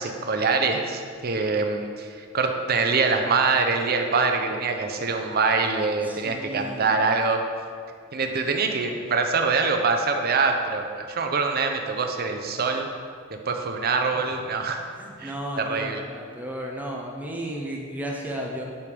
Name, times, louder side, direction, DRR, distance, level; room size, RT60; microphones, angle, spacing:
voice 1, 0.0-7.4 8.1-12.9 13.5-14.8 15.2-16.0, right 4 dB, 45° right, 4 dB, 0.6 m, -24 dB
voice 2, 6.0-6.9 14.1-14.4 15.0-18.6, equal, 10° right, -1 dB, 0.6 m, -34 dB
9.6 x 3.4 x 5.2 m, 2.1 s
head